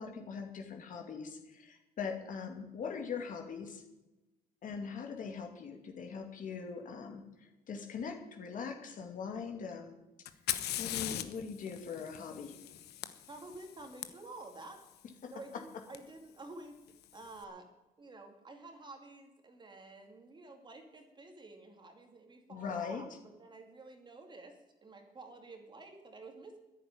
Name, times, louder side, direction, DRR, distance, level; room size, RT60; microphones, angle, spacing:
voice 1, 0.0-3.8 4.6-10.0 10.8-12.6 15.2-15.3 22.5-23.0, left 6 dB, 50° left, 3 dB, 2.5 m, -41 dB
Fire, 10.3-14.1 15.9-16.0 16.9-17.3, left 12 dB, 75° left, 1.0 m, -40 dB
voice 2, 13.3-14.8 15.2-16.8 17.1-17.7 18.0-26.6, right 2 dB, 25° right, 4 dB, 2.5 m, -50 dB
10.5 x 9.2 x 9.8 m, 1.0 s
cardioid pair, 110°, 17 cm